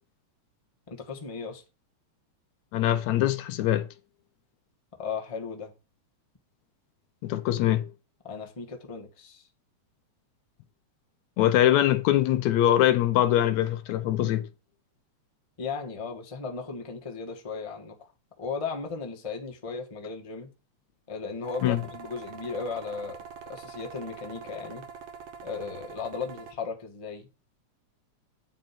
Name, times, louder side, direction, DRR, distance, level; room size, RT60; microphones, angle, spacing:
voice 1, 0.9-1.6 5.0-5.7 8.2-9.5 15.6-18.1 18.4-20.5 21.1-23.2 23.4-24.8 25.4-27.3, left 5 dB, 15° left, 1.0 m, -36 dB
voice 2, 2.7-3.9 7.2-7.9 11.4-14.5 21.6-21.8, left 12 dB, 75° left, 1.9 m, -23 dB
sound 1, 21.4-26.5, right 6 dB, 60° right, 2.0 m, -44 dB
9.2 x 4.5 x 5.9 m
omnidirectional pair, 3.4 m